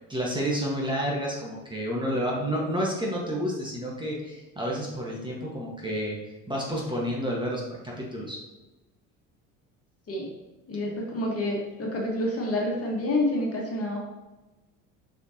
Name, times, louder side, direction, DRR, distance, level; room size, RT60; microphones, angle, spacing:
voice 1, 0.1-6.2 6.5-8.4, equal, 10° right, -3 dB, 1.6 m, -30 dB
voice 2, 10.7-14.0, left 1 dB, 35° left, -2 dB, 1.9 m, -28 dB
6.2 x 5.3 x 3.0 m, 1.1 s
hypercardioid pair, 75°, 39 cm